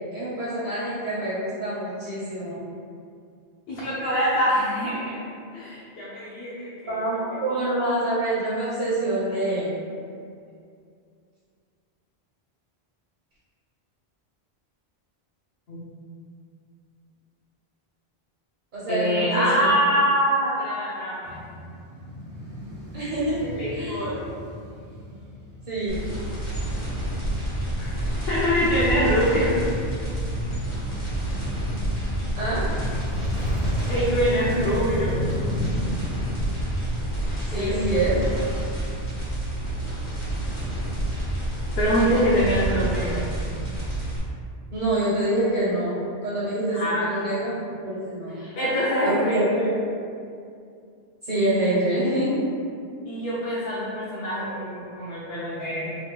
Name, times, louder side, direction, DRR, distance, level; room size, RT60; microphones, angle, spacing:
voice 1, 0.1-2.6 6.9-9.7 18.7-19.7 22.9-23.4 23.7-24.0 25.7-26.0 32.3-32.7 37.4-38.2 44.7-46.0 46.2-48.3 49.0-49.4 51.2-52.4, right 1 dB, 50° right, -10 dB, 0.9 m, -26 dB
voice 2, 3.7-5.2 5.5-7.0 7.4-7.5 15.7-15.8 18.9-21.4 23.6-24.2 27.8-27.9 28.3-29.6 33.9-35.3 37.5-37.8 41.8-43.4 46.7-47.1 48.3-49.4 53.1-56.0, equal, 70° left, -8 dB, 0.8 m, -24 dB
Male speech man speaking / Motorcycle / Idling, 21.2-37.2, left 1 dB, 75° right, 1.0 m, -34 dB
sound 1, 25.9-44.2, right 1 dB, 85° left, 1.4 m, -29 dB
3.4 x 2.2 x 2.9 m, 2.3 s
omnidirectional pair, 1.1 m